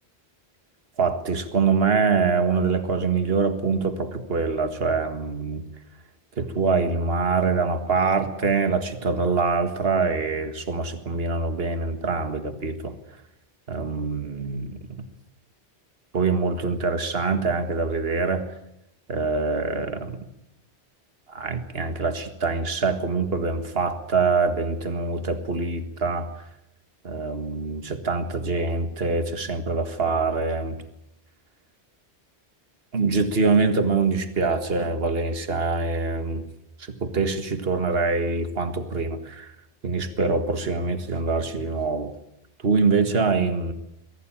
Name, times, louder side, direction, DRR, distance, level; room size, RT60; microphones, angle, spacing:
voice 1, 1.0-5.7 6.4-12.9 13.7-15.0 16.1-18.5 19.1-20.2 21.3-26.3 27.0-30.8 32.9-36.5 36.8-39.5 39.8-42.1 42.6-43.7, right 4 dB, 60° right, 8 dB, 2.0 m, -24 dB
23.5 x 16.5 x 8.9 m, 0.84 s
omnidirectional pair, 1.1 m